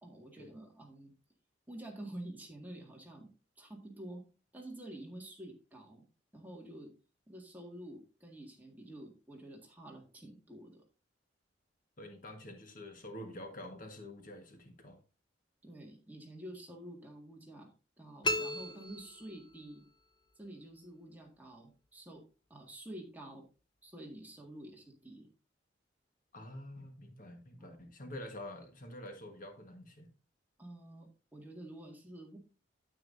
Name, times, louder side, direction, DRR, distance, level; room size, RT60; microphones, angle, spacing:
voice 1, 0.0-1.1 1.7-3.3 3.6-4.2 4.5-6.0 6.3-6.9 7.3-10.8 15.6-17.7 18.0-19.8 20.4-22.2 22.5-23.5 23.8-25.3 27.6-27.7 30.6-32.4, right 1 dB, 10° right, 0 dB, 1.9 m, -49 dB
voice 2, 12.0-15.0 26.3-30.1, left 1 dB, 45° left, 5 dB, 1.4 m, -47 dB
sound 1, 18.2-19.8, left 1 dB, 25° left, 0.6 m, -36 dB
9.4 x 9.0 x 2.6 m, 0.31 s
head